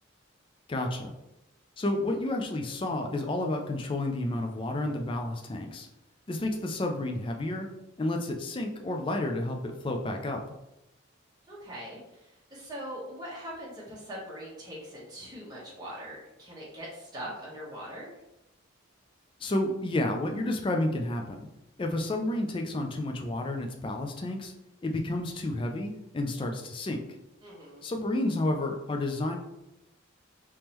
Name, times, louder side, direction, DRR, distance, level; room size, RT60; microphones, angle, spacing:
voice 1, 0.7-1.1 1.8-5.9 6.3-7.7 8.0-10.4 19.4-21.4 21.8-24.5 24.8-27.0 27.8-29.4, left 1 dB, 25° left, 3 dB, 0.3 m, -30 dB
voice 2, 11.5-18.1 27.4-27.8, equal, 20° right, -7 dB, 1.0 m, -42 dB
3.5 x 3.1 x 2.9 m, 0.91 s
head